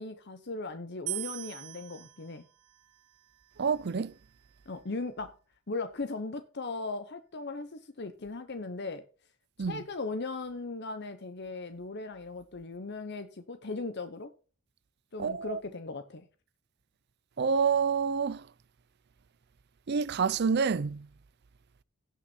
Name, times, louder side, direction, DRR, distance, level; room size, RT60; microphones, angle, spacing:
voice 1, 0.0-2.4 4.7-5.3 5.7-9.0 9.7-14.3 15.1-16.3, left 3 dB, 50° left, 0.8 m, -38 dB
sound 1, 1.1-4.3, right 19 dB, 90° right, 0.6 m, -42 dB
voice 2, 3.6-4.1 9.6-9.8 15.2-15.6 17.4-18.4 19.9-21.1, right 5 dB, 50° right, 0.4 m, -28 dB
16.5 x 6.2 x 4.4 m
head